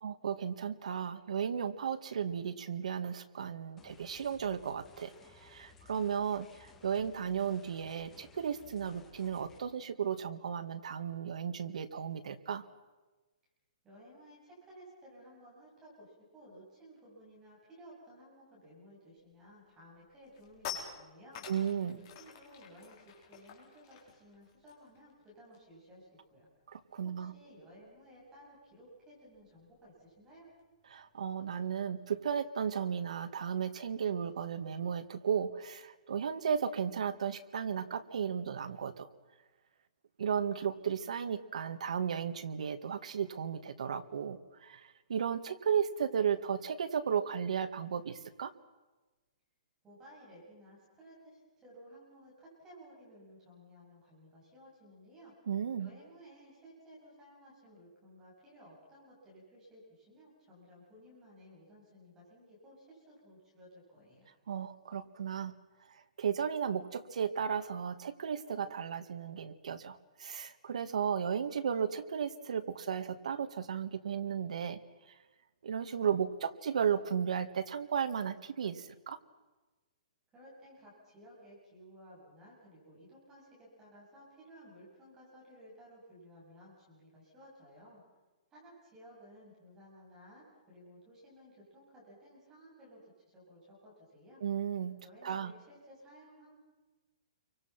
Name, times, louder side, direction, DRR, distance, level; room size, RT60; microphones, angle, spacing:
voice 1, 0.0-12.7 21.5-22.0 26.7-27.3 30.9-39.1 40.2-48.5 55.5-55.9 64.5-65.5 65.9-74.8 75.6-79.2 94.4-95.0 95.2-95.5, right 7 dB, 70° right, 10 dB, 1.8 m, -35 dB
sound 1, 3.8-9.6, left 5 dB, 10° left, 1.8 m, -59 dB
voice 2, 13.8-21.5 21.9-26.5 27.0-30.5 49.8-55.3 55.8-64.3 80.3-88.0 88.5-94.4 95.0-96.5, equal, 10° right, -6 dB, 7.8 m, -56 dB
sound 2, 19.3-19.5 19.9-25.8 26.1-26.3 26.6-31.6, left 8 dB, 30° left, 4.6 m, -50 dB
29.0 x 24.5 x 6.0 m, 1.2 s
hypercardioid pair, 180°, 4 cm